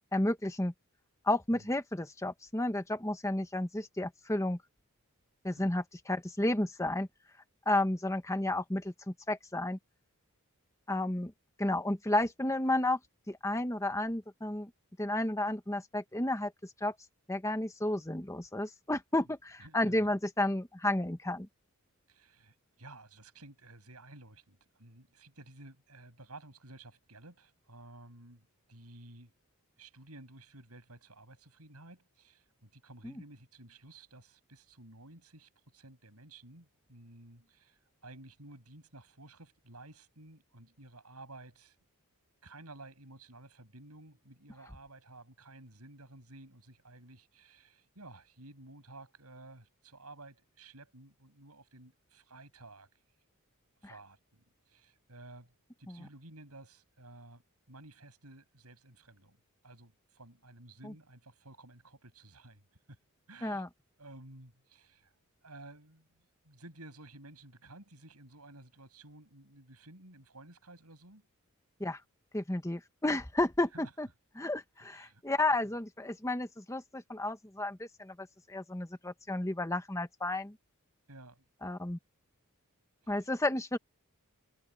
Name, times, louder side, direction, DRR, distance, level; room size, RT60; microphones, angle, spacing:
voice 1, 0.1-0.7 1.2-4.6 5.4-7.1 7.7-9.8 10.9-11.3 11.6-13.0 13.3-14.7 15.0-16.5 16.8-16.9 17.3-21.5 33.0-33.1 53.8-53.9 55.9-56.1 60.8-60.9 63.4-63.7 71.8-72.0 72.3-74.1 74.4-80.5 81.6-82.0 83.1-83.8, left 1 dB, 15° left, 1.2 m, -32 dB
voice 2, 19.2-20.1 22.1-29.3 29.8-41.8 42.4-52.9 53.8-55.5 55.8-57.4 57.7-63.0 63.3-63.7 64.0-65.1 65.4-71.3 73.7-73.9 74.8-75.7 81.1-81.4 83.0-83.3, right 2 dB, 85° right, 7.8 m, -54 dB
head